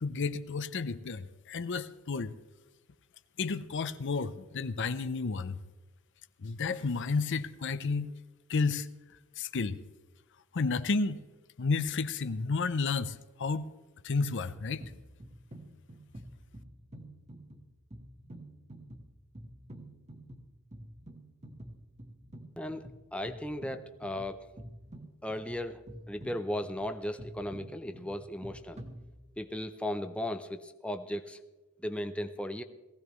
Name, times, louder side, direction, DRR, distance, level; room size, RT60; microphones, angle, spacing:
voice 1, 0.0-2.3 3.4-5.6 6.4-8.1 8.5-8.9 9.4-9.8 10.5-11.2 11.6-13.7 14.0-14.8, left 4 dB, 55° left, 0.6 m, -31 dB
sound 1, 14.2-29.6, right 1 dB, 30° right, 1.3 m, -49 dB
voice 2, 22.6-24.4 25.2-25.8 26.1-28.8 29.4-31.4 31.8-32.6, left 1 dB, 5° left, 0.5 m, -36 dB
19.0 x 16.0 x 3.1 m
head